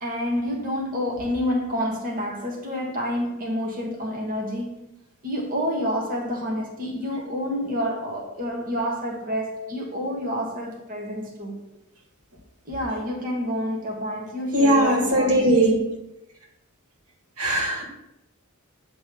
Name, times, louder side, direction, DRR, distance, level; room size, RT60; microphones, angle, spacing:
voice 1, 0.0-4.8 5.2-11.6 12.6-15.3, equal, 40° right, 1.3 m, -28 dB
voice 2, 14.5-15.9 17.4-17.8, right 1 dB, 90° right, 1.9 m, -20 dB
8.4 x 3.3 x 5.9 m
head